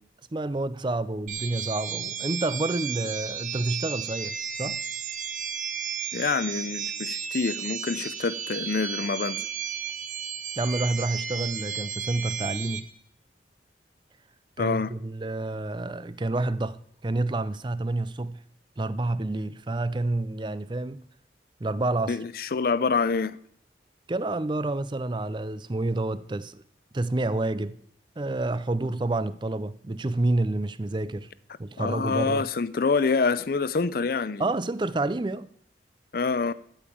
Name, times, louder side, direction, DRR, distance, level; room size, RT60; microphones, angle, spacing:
voice 1, 0.3-4.8 10.6-12.9 14.6-16.8 17.0-18.4 18.8-21.0 21.6-22.2 24.1-26.6 26.9-27.8 28.2-31.3 31.6-32.5 34.4-35.5, right 2 dB, 25° right, 0.4 m, -29 dB
sound 1, 1.3-12.8, right 7 dB, 45° right, 1.2 m, -33 dB
voice 2, 6.1-9.5 14.6-14.9 22.1-23.4 31.8-34.4 36.1-36.5, left 4 dB, 55° left, 0.5 m, -26 dB
13.0 x 5.5 x 8.5 m
head